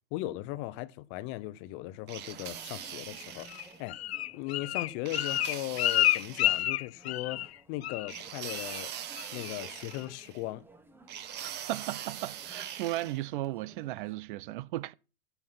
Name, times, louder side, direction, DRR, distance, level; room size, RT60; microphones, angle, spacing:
voice 1, 0.1-4.0 4.3-8.9 9.3-10.6, left 17 dB, 40° left, 0.8 m, -38 dB
sound 1, 2.1-3.8 5.1-6.7 8.1-10.4 11.1-13.2, right 10 dB, 35° right, 1.3 m, -42 dB
sound 2, 2.2-14.2, right 2 dB, 5° right, 1.1 m, -57 dB
Bird, 3.5-7.6 7.8-8.2 8.5-8.8 9.2-9.5 9.9-10.0, left 15 dB, 85° left, 0.5 m, -30 dB
voice 2, 11.4-14.9, right 16 dB, 55° right, 0.6 m, -36 dB
16.0 x 5.7 x 5.9 m
hypercardioid pair, 130°, 31 cm